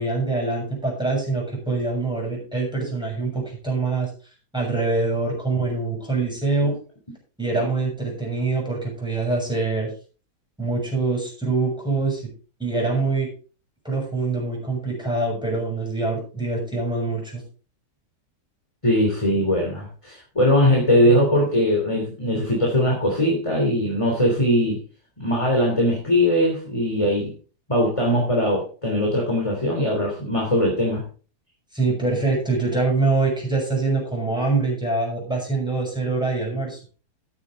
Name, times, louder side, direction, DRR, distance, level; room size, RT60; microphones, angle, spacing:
voice 1, 0.0-4.1 4.5-6.7 7.4-9.9 10.6-12.2 12.6-13.3 13.8-17.4 31.7-36.8, right 3 dB, ahead, -1 dB, 7.1 m, -24 dB
voice 2, 18.8-24.8 25.2-27.3 27.7-31.0, equal, 15° left, -1 dB, 3.2 m, -20 dB
13.5 x 9.4 x 3.8 m, 0.38 s
omnidirectional pair, 1.8 m